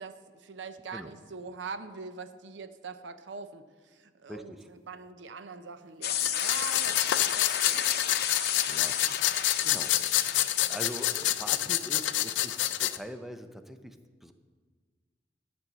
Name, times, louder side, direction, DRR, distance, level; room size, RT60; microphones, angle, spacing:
voice 1, 0.0-7.9, right 4 dB, 85° right, 10 dB, 0.6 m, -43 dB
voice 2, 4.3-4.7 8.7-9.3 9.6-9.9 10.7-14.0 14.2-14.3, equal, ahead, 8 dB, 0.5 m, -42 dB
sound 1, 6.0-11.4, left 9 dB, 60° left, 0.7 m, -32 dB
sound 2, 6.2-13.0, left 13 dB, 90° left, 0.4 m, -28 dB
11.0 x 5.4 x 7.3 m, 1.5 s
head